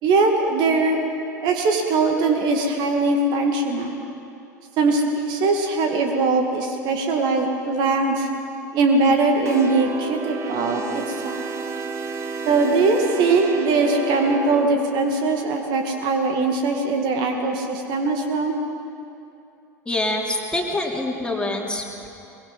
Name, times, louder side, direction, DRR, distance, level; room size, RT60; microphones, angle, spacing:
voice 1, 0.0-1.0 1.4-4.0 4.8-8.3 8.7-11.5 12.5-18.6, right 3 dB, 50° right, 3 dB, 2.2 m, -21 dB
sound 1, 9.4-14.7, right 4 dB, 30° right, 1.9 m, -31 dB
voice 2, 19.9-22.1, left 2 dB, 10° left, 0 dB, 3.2 m, -25 dB
22.5 x 22.0 x 5.5 m, 2.8 s
figure-of-eight pair, 75°, 10 cm